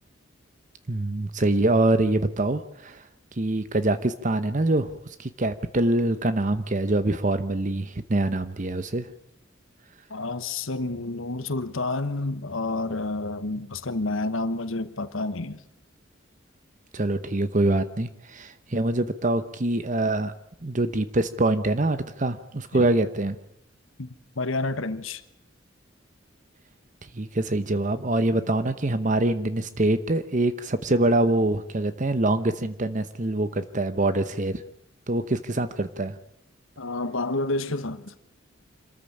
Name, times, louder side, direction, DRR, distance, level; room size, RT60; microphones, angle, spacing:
voice 1, 0.9-3.0 3.4-4.9 5.2-9.1 16.9-20.3 20.6-23.4 27.1-34.6 35.1-36.1, right 2 dB, 40° right, 0.9 m, -24 dB
voice 2, 10.1-15.6 22.7-22.9 24.0-25.2 36.8-38.2, left 2 dB, 85° left, 1.3 m, -29 dB
26.5 x 14.0 x 8.7 m
head